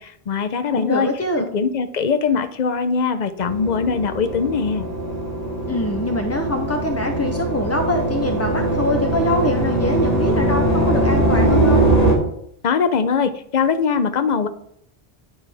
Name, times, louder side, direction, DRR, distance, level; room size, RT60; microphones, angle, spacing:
voice 1, 0.0-1.1 1.4-4.9 12.6-14.5, left 5 dB, 50° left, 9 dB, 0.7 m, -21 dB
voice 2, 0.7-1.5 5.7-11.9, left 1 dB, 20° left, 4 dB, 0.4 m, -24 dB
sound 1, 3.4-12.1, right 1 dB, 40° right, 1.8 m, -21 dB
10.0 x 5.6 x 3.4 m, 0.70 s
omnidirectional pair, 1.0 m